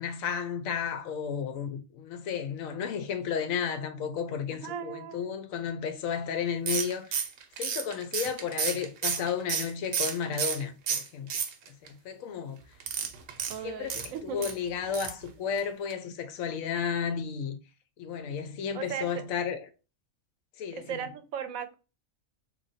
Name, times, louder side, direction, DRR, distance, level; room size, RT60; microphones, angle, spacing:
voice 1, 0.0-7.1 7.6-11.3 11.7-12.6 13.6-17.6 18.0-19.6 20.6-21.0, left 7 dB, 80° left, 1.0 m, -33 dB
voice 2, 4.6-5.3 13.5-14.5 18.7-19.2 20.7-21.7, right 8 dB, 85° right, 1.0 m, -37 dB
sound 1, 6.7-10.6 10.9-11.9 12.8-14.5 14.9-15.2 15.5-15.6 15.9-16.0, right 7 dB, 65° right, 0.8 m, -31 dB
3.1 x 2.2 x 4.1 m
omnidirectional pair, 1.4 m